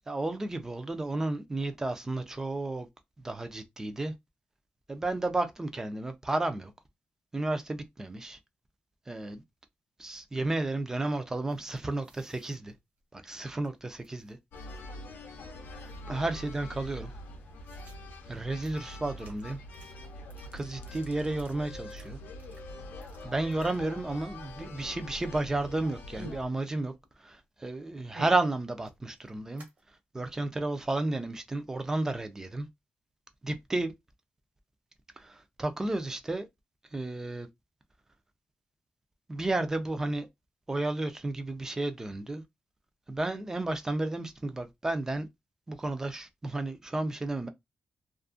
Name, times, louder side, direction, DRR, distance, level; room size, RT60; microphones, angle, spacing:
voice 1, 0.1-2.9 3.2-4.1 4.9-6.7 7.3-8.4 9.1-9.4 10.0-12.7 13.1-14.4 16.1-17.1 18.3-19.6 20.5-22.2 23.2-29.6 30.1-32.7 33.4-33.9 35.2-36.5 36.9-37.5 39.3-40.3 40.7-42.4 43.1-45.3 45.7-47.5, right 2 dB, 15° right, 0.3 m, -32 dB
sound 1, 11.5-13.7 14.0-15.0 15.3-15.4 15.7-16.3 16.7-16.8 17.1-24.3 24.6-25.3 25.6-27.1 27.4-29.8, right 2 dB, 60° right, 0.9 m, -53 dB
sound 2, 14.5-26.5, left 1 dB, 80° left, 0.5 m, -44 dB
2.5 x 2.4 x 2.4 m
wide cardioid pair, 160°, 3 cm